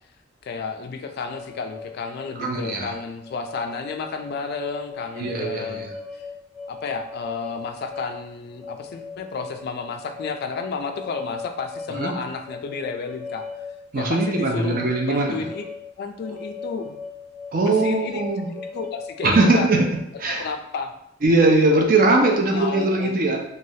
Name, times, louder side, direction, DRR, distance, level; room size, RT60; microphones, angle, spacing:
voice 1, 0.4-6.3 6.7-13.6 13.9-14.8 15.0-15.7 16.0-17.0 17.6-18.3 18.7-19.7 20.3-20.9 22.2-23.2, left 4 dB, 55° left, 6 dB, 0.3 m, -32 dB
sound 1, 1.3-20.0, left 4 dB, 5° left, 0.6 m, -39 dB
voice 2, 2.4-2.9 5.2-5.9 12.0-12.1 13.9-15.4 17.5-18.5 19.2-19.8 20.2-20.5 21.2-23.4, right 2 dB, 50° right, 1 dB, 0.5 m, -20 dB
3.1 x 2.3 x 2.7 m, 0.78 s
head